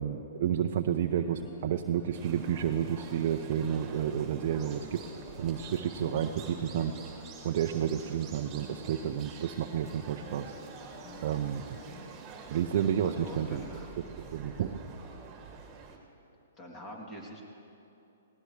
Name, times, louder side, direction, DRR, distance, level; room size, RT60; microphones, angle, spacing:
voice 1, 0.0-5.0 5.4-6.9 7.4-10.5 11.2-11.6 12.5-13.6 14.3-14.8, right 9 dB, 55° right, 5 dB, 0.6 m, -30 dB
sound 1, 1.0-12.1, left 3 dB, 45° left, 2.5 m, -49 dB
sound 2, 2.1-16.0, right 5 dB, 25° right, 1.9 m, -48 dB
voice 2, 13.0-13.9 16.6-17.4, equal, 25° left, -1 dB, 3.0 m, -44 dB
19.0 x 18.0 x 3.3 m, 2.8 s
hypercardioid pair, 135°, 0 cm